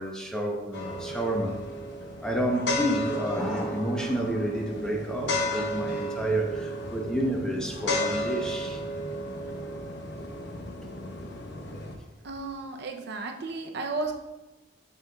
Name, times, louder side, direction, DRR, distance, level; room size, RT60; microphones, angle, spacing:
voice 1, 0.0-1.6 2.2-8.8 10.8-10.9, right 1 dB, 5° left, 0 dB, 0.8 m, -30 dB
sound 1, 0.7-11.9, left 1 dB, 60° left, 0.9 m, -33 dB
voice 2, 12.2-14.1, right 3 dB, 60° right, 3 dB, 0.6 m, -33 dB
6.8 x 6.7 x 2.3 m, 1.1 s
head